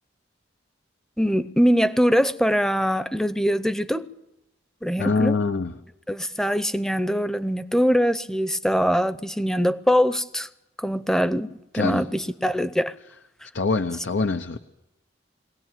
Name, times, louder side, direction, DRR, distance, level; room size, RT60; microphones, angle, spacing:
voice 1, 1.2-4.1 4.8-5.3 6.1-10.5 10.8-12.9, equal, 5° left, 0.7 m, -22 dB
voice 2, 5.0-5.7 11.7-12.0 13.5-14.6, left 4 dB, 80° left, 0.9 m, -24 dB
23.0 x 18.0 x 9.2 m
head